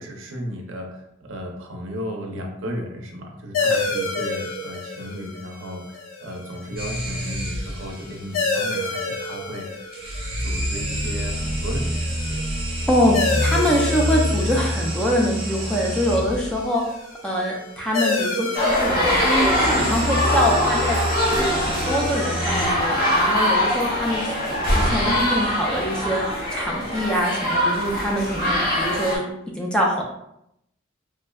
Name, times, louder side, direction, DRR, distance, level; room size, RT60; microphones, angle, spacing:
voice 1, 0.0-9.9 10.4-12.4, equal, 75° right, 2 dB, 0.5 m, -34 dB
sound 1, 3.5-22.7, left 3 dB, 80° left, 0.4 m, -31 dB
sound 2, 6.8-8.0 9.9-16.6 19.1-22.7, equal, 30° right, 0.7 m, -27 dB
voice 2, 13.4-16.8 17.2-21.0 21.3-24.2 24.5-29.2 29.6-30.0, equal, 5° left, -2 dB, 0.4 m, -24 dB
sound 3, 18.6-29.2, equal, 45° left, 0.8 m, -22 dB
3.4 x 2.2 x 2.2 m, 0.78 s
head